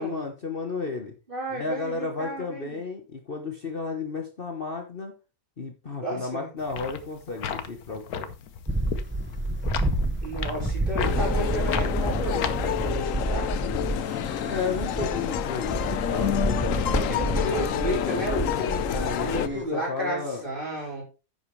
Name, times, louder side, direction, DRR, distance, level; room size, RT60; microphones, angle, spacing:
voice 1, 0.0-1.1 1.5-5.1 5.6-8.3 14.5-18.2 18.9-20.4, left 4 dB, 40° left, 3 dB, 1.3 m, -33 dB
voice 2, 1.3-2.8 5.9-6.5 10.2-13.5 16.9-18.9 19.2-21.0, right 1 dB, 35° right, -3 dB, 5.4 m, -32 dB
sound 1, 6.6-12.9, left 8 dB, 85° left, 1.4 m, -35 dB
sound 2, 8.7-19.6, right 1 dB, 10° right, 0.9 m, -29 dB
sound 3, 11.0-19.5, left 11 dB, 70° left, 1.0 m, -29 dB
10.5 x 8.1 x 3.2 m, 0.29 s
omnidirectional pair, 1.5 m